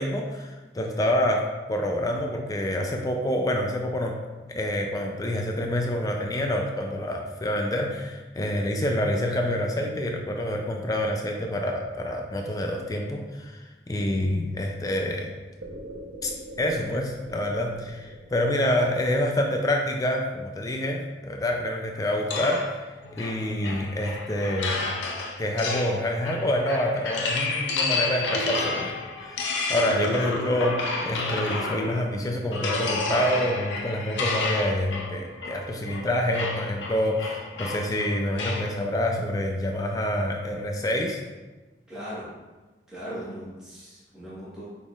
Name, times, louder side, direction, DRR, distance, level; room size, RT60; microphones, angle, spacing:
voice 1, 0.0-1.4 1.7-4.2 4.5-15.3 16.2-22.6 23.2-24.8 25.4-28.9 29.2-41.2, left 1 dB, 20° left, 2 dB, 0.3 m, -27 dB
sound 1, 15.6-19.8, right 1 dB, 85° right, 0.8 m, -42 dB
sound 2, 22.3-32.1 32.5-38.7, left 3 dB, 90° left, 0.6 m, -30 dB
voice 2, 41.9-42.3 42.9-44.7, equal, 5° right, -11 dB, 1.3 m, -38 dB
6.2 x 3.6 x 2.4 m, 1.2 s
head